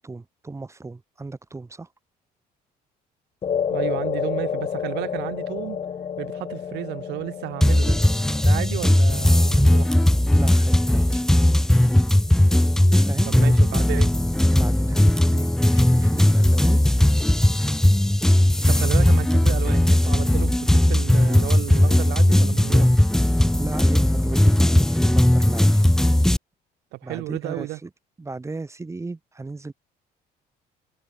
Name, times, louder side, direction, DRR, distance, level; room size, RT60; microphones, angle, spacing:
voice 1, 0.0-1.9 10.3-11.2 12.9-13.3 14.6-16.8 18.6-18.9 23.6-25.8 27.0-27.9 28.2-29.7, right 3 dB, 15° right, 2.4 m, -35 dB
sound 1, 3.4-11.9, left 7 dB, 35° left, 0.8 m, -31 dB
voice 2, 3.7-5.8 6.2-8.0 8.4-9.9 13.3-14.1 18.7-22.9 26.9-27.8, right 19 dB, 85° right, 1.7 m, -32 dB
sound 2, 7.6-26.4, left 1 dB, 5° left, 0.3 m, -18 dB
cardioid pair, 110°, 17 cm